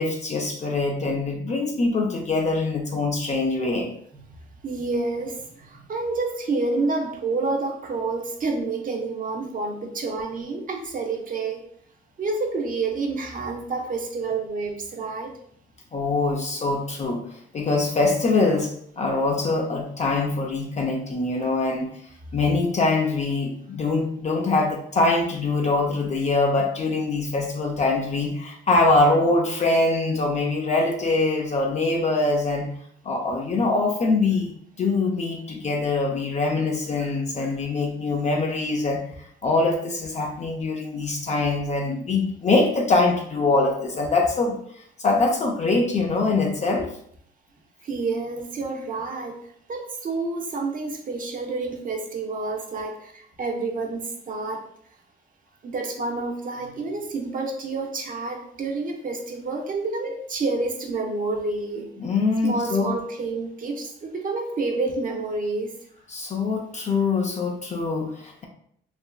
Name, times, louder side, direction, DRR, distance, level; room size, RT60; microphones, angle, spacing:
voice 1, 0.0-3.9 15.9-21.9 22.3-32.7 33.0-46.9 62.0-63.0 66.1-68.4, left 3 dB, 35° left, 1 dB, 0.4 m, -23 dB
voice 2, 4.6-11.6 12.2-15.3 47.8-54.6 55.6-61.9 62.4-65.8, right 3 dB, 45° right, 3 dB, 0.6 m, -29 dB
2.9 x 2.4 x 2.2 m, 0.65 s
cardioid pair, 90°, 20 cm